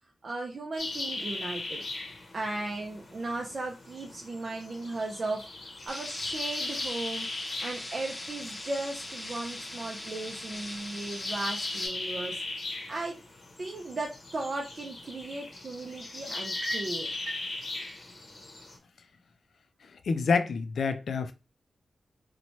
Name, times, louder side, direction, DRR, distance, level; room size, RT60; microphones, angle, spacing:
voice 1, 0.2-1.8 2.3-5.5 5.8-7.3 7.6-12.4 12.9-13.2 13.6-17.1, right 2 dB, 45° right, 0.4 m, -36 dB
sound 1, 0.8-18.8, left 2 dB, 55° left, 0.8 m, -39 dB
sound 2, 5.9-11.9, left 1 dB, 25° left, 0.6 m, -41 dB
sound 3, 16.4-17.5, right 1 dB, 65° right, 0.8 m, -38 dB
voice 2, 19.8-21.3, left 5 dB, 75° left, 0.3 m, -28 dB
2.8 x 2.1 x 3.0 m
wide cardioid pair, 130°, 0 cm